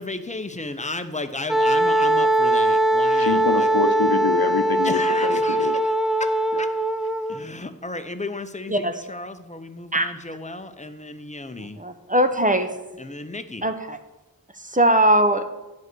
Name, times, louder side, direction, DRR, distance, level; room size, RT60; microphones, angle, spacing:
voice 1, 0.0-3.7 4.8-5.9 6.2-6.7 7.3-11.8 13.0-13.7, left 2 dB, 20° left, 9 dB, 0.7 m, -34 dB
Wind instrument woodwind instrument, 1.5-7.5, right 1 dB, ahead, 0.4 m, -21 dB
voice 2, 3.2-5.8 6.5-6.6, left 5 dB, 75° left, 10 dB, 0.7 m, -25 dB
voice 3, 11.6-12.7 13.6-14.0 14.6-15.4, right 1 dB, 20° right, 8 dB, 0.8 m, -20 dB
9.4 x 5.3 x 6.1 m, 1.1 s
wide cardioid pair, 55°, 36 cm